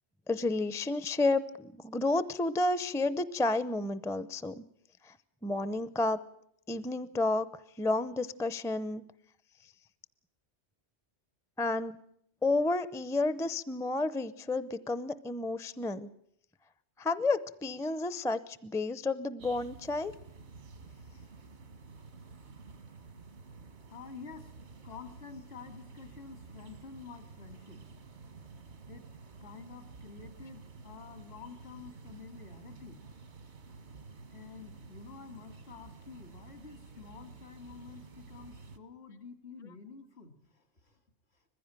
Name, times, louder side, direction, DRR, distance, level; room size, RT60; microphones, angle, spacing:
voice 1, 0.3-4.6 5.0-5.2 5.4-6.2 6.7-7.5 7.8-9.0 11.6-11.9 12.4-16.1 17.0-20.1, left 2 dB, 5° left, 15 dB, 0.5 m, -31 dB
sound 1, 19.4-38.8, right 4 dB, 85° right, 1.7 m, -51 dB
voice 2, 23.9-24.5 24.8-27.8 28.9-29.1 29.4-33.0 34.3-41.0, left 5 dB, 70° left, 7 dB, 2.7 m, -49 dB
21.0 x 15.5 x 9.0 m, 0.72 s
omnidirectional pair, 1.1 m